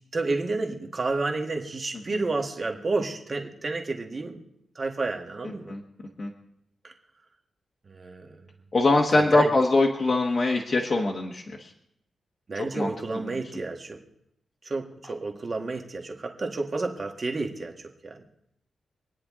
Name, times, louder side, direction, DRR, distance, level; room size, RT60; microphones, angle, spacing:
voice 1, 0.1-4.4 4.7-5.7 6.8-6.9 7.8-8.4 9.1-9.5 12.5-14.0 14.6-18.3, right 3 dB, 30° right, 2 dB, 1.7 m, -30 dB
voice 2, 8.7-11.7 12.7-12.9, left 2 dB, 35° left, -1 dB, 1.3 m, -22 dB
26.5 x 10.0 x 3.7 m, 0.77 s
wide cardioid pair, 180°, 0 cm